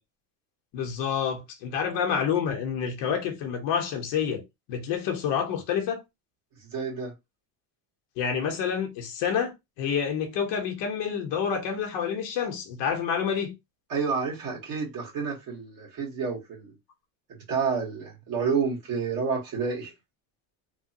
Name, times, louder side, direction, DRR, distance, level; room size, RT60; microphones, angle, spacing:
voice 1, 0.7-4.4 4.7-6.0 8.2-13.5, left 7 dB, 70° left, 0.9 m, -28 dB
voice 2, 6.6-7.1 13.9-16.8 17.5-19.9, right 5 dB, 50° right, 1.5 m, -29 dB
3.0 x 2.1 x 2.7 m
cardioid pair, 160°, 43 cm